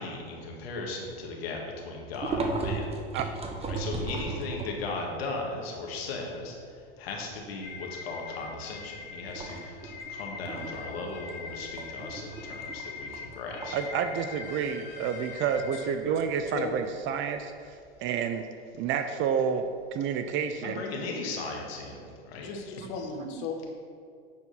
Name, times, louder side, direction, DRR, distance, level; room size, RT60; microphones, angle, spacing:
voice 1, 0.0-2.9 3.7-13.8 20.6-22.5, left 3 dB, 75° left, 0 dB, 2.0 m, -37 dB
sound 1, 2.1-5.0 5.5-5.6 6.0-7.1 7.6-7.8 8.2-8.8 9.2-18.0, right 3 dB, 20° right, 1.1 m, -36 dB
sound 2, 7.6-15.9, left 5 dB, 30° left, 2.3 m, -42 dB
voice 2, 13.7-17.5 18.0-18.5 18.8-19.6 19.9-20.8 23.1-23.5, right 7 dB, 40° right, 8 dB, 0.6 m, -29 dB
voice 3, 16.5-16.8 22.4-23.7, left 4 dB, 55° left, 3 dB, 1.4 m, -36 dB
9.5 x 4.7 x 5.6 m, 2.3 s
hypercardioid pair, 100°, 31 cm